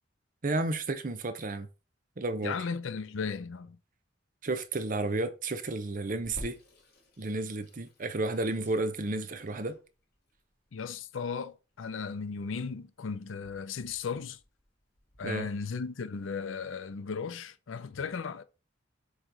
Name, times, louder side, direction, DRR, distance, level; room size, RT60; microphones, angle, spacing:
voice 1, 0.4-1.7 2.2-2.6 4.4-6.6 7.2-9.8 15.2-15.5, right 2 dB, 45° right, 0.7 m, -32 dB
voice 2, 2.4-3.8 10.7-14.4 15.2-18.4, left 5 dB, 80° left, 0.5 m, -36 dB
Water tap faucet / Sink (filling or washing), 6.2-15.2, equal, 55° left, 2.1 m, -52 dB
7.9 x 3.1 x 3.9 m
head